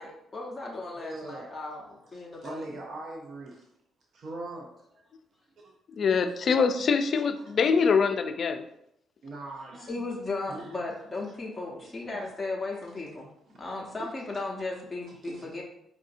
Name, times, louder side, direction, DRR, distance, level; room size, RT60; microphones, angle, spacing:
voice 1, 0.0-2.8 9.9-13.3 13.6-15.6, left 2 dB, 15° left, -3 dB, 0.8 m, -36 dB
voice 2, 1.0-1.5 2.1-3.7 4.1-4.8 5.6-5.7 7.4-7.5 9.2-10.1 10.5-10.7 11.8-12.2 14.0-14.1 15.2-15.6, right 2 dB, 60° right, -1 dB, 0.6 m, -41 dB
voice 3, 6.0-8.6, left 5 dB, 55° left, 8 dB, 0.3 m, -24 dB
4.8 x 2.6 x 2.6 m, 0.78 s
cardioid pair, 90°, 0 cm